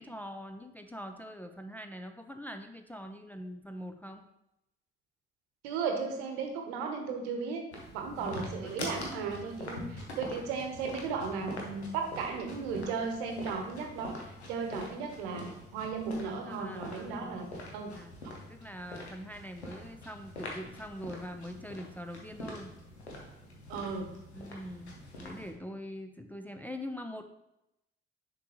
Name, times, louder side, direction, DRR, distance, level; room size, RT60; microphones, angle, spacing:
voice 1, 0.0-4.3 8.2-8.8 9.4-9.5 16.5-17.6 17.9-18.1 18.5-22.7 24.3-27.2, equal, 5° left, 5 dB, 0.5 m, -43 dB
voice 2, 5.6-7.6 7.9-17.5 17.7-17.9 23.7-24.1, right 5 dB, 70° right, 4 dB, 1.0 m, -35 dB
sound 1, 7.7-25.5, left 1 dB, 85° left, 0.9 m, -44 dB
6.6 x 5.3 x 3.0 m, 0.87 s
figure-of-eight pair, 40°, 33 cm